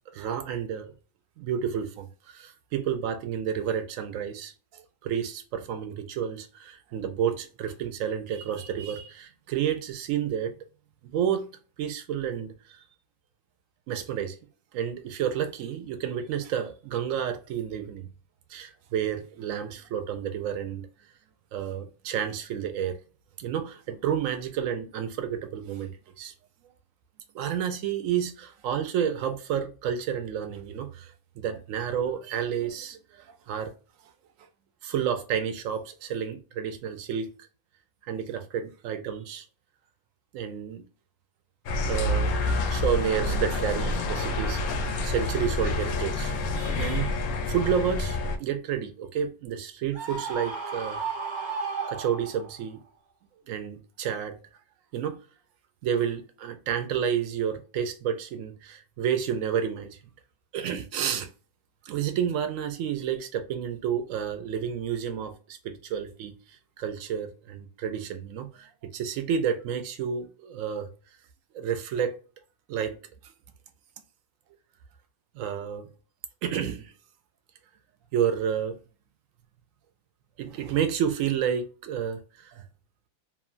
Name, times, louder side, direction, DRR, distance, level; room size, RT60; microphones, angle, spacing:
voice 1, 0.1-0.9 1.4-10.5 11.0-11.5 11.8-12.8 13.9-14.4 14.7-18.1 18.5-20.9 21.5-23.0 23.4-25.9 26.2-26.3 27.3-33.7 34.8-37.3 38.1-39.5 40.3-40.9 41.8-42.3 42.7-51.1 51.9-52.8 53.5-54.4 54.9-55.2 55.8-60.0 60.5-61.3 61.8-70.9 71.5-72.2 72.7-73.0 75.3-75.9 76.4-76.9 78.1-78.8 80.4-82.6, right 8 dB, 70° right, 0.8 m, -30 dB
sound 1, 41.7-48.4, left 2 dB, 70° left, 0.9 m, -28 dB
Screaming, 49.9-52.6, right 5 dB, 35° right, 1.0 m, -33 dB
3.0 x 2.2 x 2.4 m
omnidirectional pair, 1.8 m